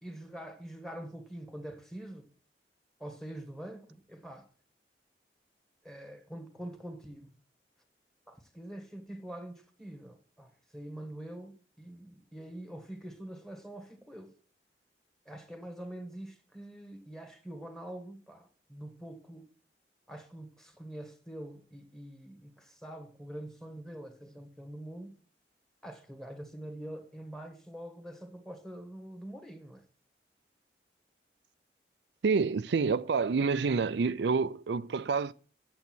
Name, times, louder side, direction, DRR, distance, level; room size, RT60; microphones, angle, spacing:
voice 1, 0.0-2.3 3.0-4.5 5.8-7.3 8.3-14.3 15.3-19.5 20.1-25.2 25.8-29.8, right 1 dB, 5° left, 1.6 m, -45 dB
voice 2, 32.2-35.3, right 5 dB, 80° right, 0.4 m, -28 dB
8.4 x 7.9 x 6.1 m
head